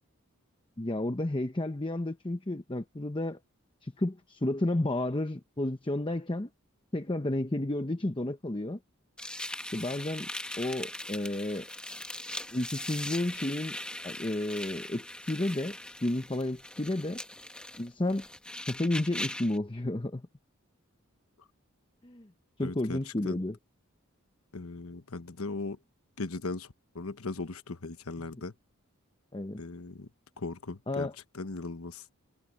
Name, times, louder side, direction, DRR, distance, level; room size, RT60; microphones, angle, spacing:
voice 1, 0.8-3.4 3.8-6.5 6.9-8.8 9.7-10.3 10.6-11.7 12.5-13.8 14.0-17.2 17.8-18.3 18.7-20.2 22.0-22.3 22.6-23.6 28.3-28.4 29.3-29.6 30.9-31.2, left 1 dB, 20° left, 0.8 m, -32 dB
sound 1, 9.2-19.6, left 1 dB, 5° left, 1.2 m, -40 dB
voice 2, 22.6-23.0 23.2-23.4 24.5-25.8 26.2-26.7 26.9-28.5 29.6-30.1 30.4-31.1 31.3-32.0, left 3 dB, 85° left, 1.1 m, -38 dB
head